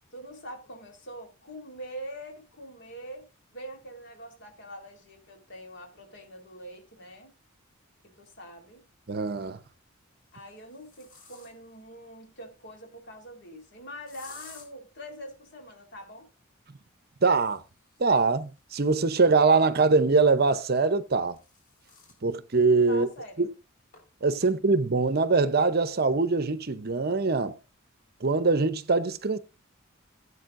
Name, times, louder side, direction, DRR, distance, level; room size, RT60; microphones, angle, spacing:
voice 1, 0.1-7.3 8.2-8.8 10.3-16.3 22.9-23.5, equal, 55° left, 3.7 m, -44 dB
voice 2, 9.1-9.6 17.2-17.6 18.0-21.4 22.2-23.1 23.4-23.5 24.2-27.5 28.2-29.4, right 4 dB, 45° right, 0.7 m, -23 dB
sound 1, 9.4-9.6 10.2-11.8 14.1-14.7 17.3-19.9 20.9-22.2 22.7-22.8 23.1-23.2 23.9-24.0 24.4-24.8, left 4 dB, 40° left, 4.5 m, -54 dB
17.5 x 8.3 x 2.6 m
head